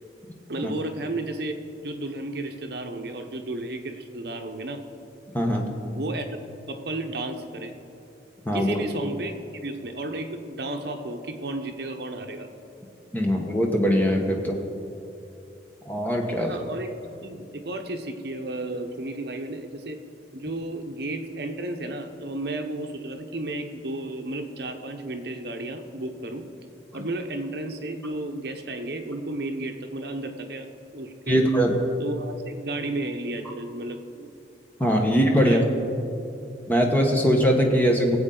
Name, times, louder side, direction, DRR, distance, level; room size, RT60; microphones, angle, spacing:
voice 1, 0.5-1.5 1.8-4.8 6.0-7.7 8.5-9.3 9.6-12.5 16.4-20.0 20.3-26.4 26.9-30.7 30.9-31.4 32.0-34.3 35.4-35.7, right 2 dB, 60° right, 5 dB, 0.9 m, -33 dB
voice 2, 5.3-5.7 8.4-8.8 13.1-14.6 15.9-16.5 31.3-31.8 34.8-35.6 36.7-38.2, equal, 10° left, 1 dB, 1.1 m, -21 dB
19.0 x 8.0 x 3.9 m, 2.7 s
head